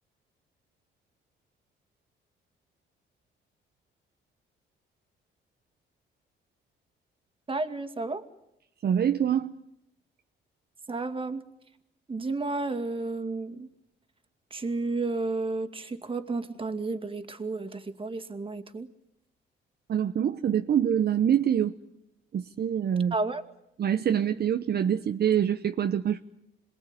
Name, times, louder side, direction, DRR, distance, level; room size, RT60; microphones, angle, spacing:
voice 1, 7.5-8.2 10.9-11.4 12.1-13.7 14.5-18.9 23.1-23.4, right 3 dB, 25° right, 2.4 m, -32 dB
voice 2, 8.8-9.5 19.9-21.8 22.3-23.1 23.8-26.2, right 9 dB, 55° right, 1.0 m, -25 dB
27.0 x 21.0 x 9.9 m
cardioid pair, 90°, 20 cm